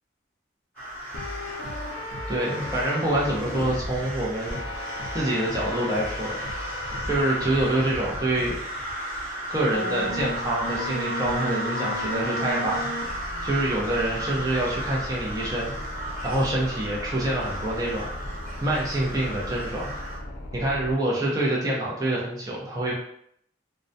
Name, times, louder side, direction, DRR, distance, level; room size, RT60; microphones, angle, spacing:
sound 1, 0.7-20.2, right 1 dB, 10° left, 0.9 m, -35 dB
sound 2, 1.1-3.7 4.5-7.9 8.5-8.6 9.7-20.9, left 1 dB, 65° left, 0.5 m, -36 dB
sound 3, 1.2-8.8, equal, 80° right, 0.9 m, -40 dB
voice 1, 2.3-4.8 5.1-6.4 7.0-8.6 9.5-12.8 13.4-15.7 16.2-18.1 18.6-19.9 20.5-22.9, right 1 dB, 20° right, -5 dB, 0.6 m, -26 dB
2.2 x 2.1 x 2.6 m, 0.69 s
head